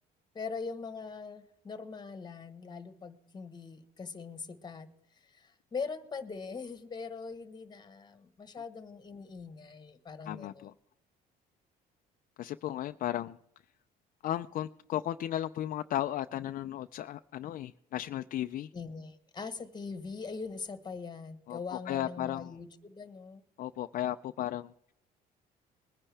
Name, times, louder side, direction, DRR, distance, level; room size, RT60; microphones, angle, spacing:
voice 1, 0.3-10.7 18.7-23.4, left 5 dB, 25° left, 1.3 m, -42 dB
voice 2, 10.3-10.7 12.4-13.4 14.2-18.7 21.5-22.5 23.6-24.9, left 12 dB, 55° left, 0.4 m, -35 dB
21.0 x 9.9 x 3.4 m
cardioid pair, 110°, 17 cm